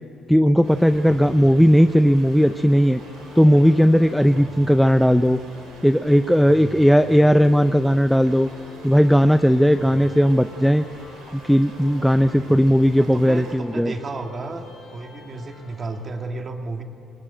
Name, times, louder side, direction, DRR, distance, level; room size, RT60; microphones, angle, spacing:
voice 1, 0.3-3.0 3.4-5.4 5.8-8.5 8.8-10.9 11.3-13.9, equal, ahead, 9 dB, 0.5 m, -16 dB
sound 1, 0.6-16.0, left 3 dB, 85° left, 6.8 m, -45 dB
sound 2, 0.6-13.6, right 3 dB, 85° right, 5.4 m, -47 dB
voice 2, 1.1-1.4 4.2-4.6 6.4-7.3 12.2-12.6 13.0-16.8, right 3 dB, 40° right, 4 dB, 2.3 m, -34 dB
23.0 x 19.5 x 9.0 m, 2.5 s
cardioid pair, 100°, 0 cm